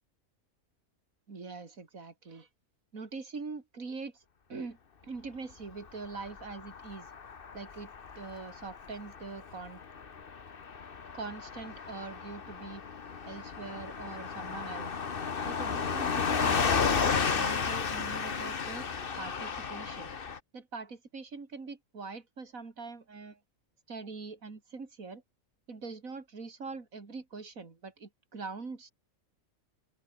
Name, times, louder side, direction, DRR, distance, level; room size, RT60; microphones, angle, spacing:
voice 1, 1.3-2.5 2.9-4.2 4.5-4.8 5.0-7.1 7.5-9.8 11.1-12.8 13.3-14.9 15.4-18.9 19.2-20.1 20.5-23.4 23.9-25.2 25.7-28.9, right 4 dB, 80° right, 3.3 m, -43 dB
Car passing by / Truck, 6.0-20.4, left 6 dB, 45° left, 1.3 m, -33 dB
open air
omnidirectional pair, 1.4 m